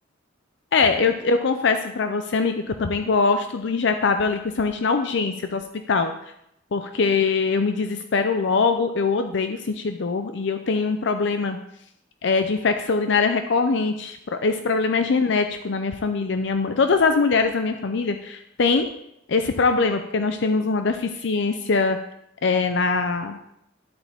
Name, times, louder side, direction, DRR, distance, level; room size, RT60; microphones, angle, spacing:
voice 1, 0.7-5.6 5.9-6.1 6.7-11.6 12.2-18.9 19.3-22.0 22.4-23.4, left 4 dB, 65° left, 7 dB, 0.5 m, -22 dB
11.5 x 8.0 x 3.5 m, 0.77 s
head